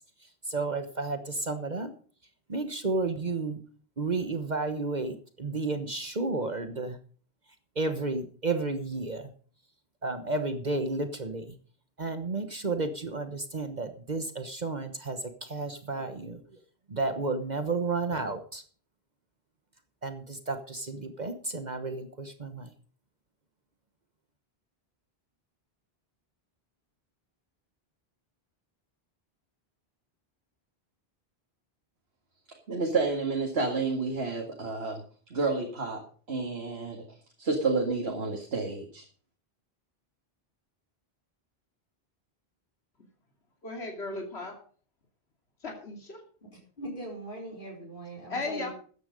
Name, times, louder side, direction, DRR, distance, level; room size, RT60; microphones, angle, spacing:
voice 1, 0.2-1.9 2.5-3.6 4.0-7.0 7.7-9.3 10.0-11.6 12.0-16.6 16.9-18.6 20.0-22.7, right 3 dB, 45° right, 8 dB, 1.3 m, -32 dB
voice 2, 32.7-35.0 35.3-36.0 36.3-37.0 37.4-39.0, right 3 dB, 75° right, 2 dB, 2.3 m, -30 dB
voice 3, 43.6-44.5 45.6-46.2 48.3-48.7, left 3 dB, 85° left, 1 dB, 2.9 m, -35 dB
voice 4, 46.8-48.7, right 1 dB, 55° left, -3 dB, 4.9 m, -40 dB
14.0 x 9.7 x 5.2 m, 0.42 s
omnidirectional pair, 1.1 m